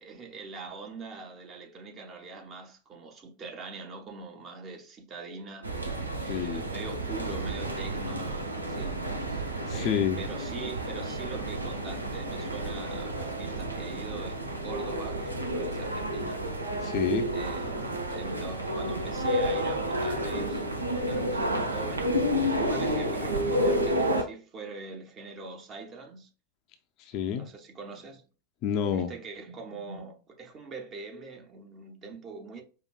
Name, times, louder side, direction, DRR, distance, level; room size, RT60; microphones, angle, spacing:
voice 1, 0.0-16.5 17.3-20.6 20.9-22.1 22.4-26.3 27.4-28.2 28.9-32.6, right 3 dB, 30° right, 0.8 m, -43 dB
sound 1, 5.6-24.2, right 1 dB, 80° right, 0.6 m, -30 dB
voice 2, 6.3-6.6 9.7-10.2 16.8-17.3 27.1-27.5 28.6-29.1, left 8 dB, 40° left, 0.5 m, -28 dB
4.9 x 2.5 x 2.3 m
figure-of-eight pair, 90°, 0 cm